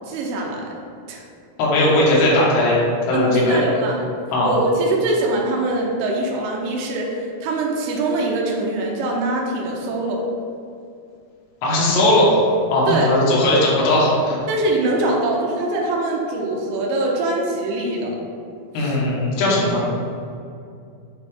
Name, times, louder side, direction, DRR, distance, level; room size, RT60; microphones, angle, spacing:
voice 1, 0.1-0.7 1.1-1.2 3.1-4.1 4.4-10.2 12.9-13.1 14.5-18.2 18.8-19.0, right 2 dB, 90° right, -1 dB, 3.2 m, -23 dB
voice 2, 1.6-2.8 3.1-3.6 4.3-4.5 11.6-12.4 12.7-14.4 18.7-19.8, left 1 dB, 70° left, -5 dB, 3.3 m, -18 dB
8.4 x 4.0 x 3.6 m, 2.4 s
omnidirectional pair, 5.1 m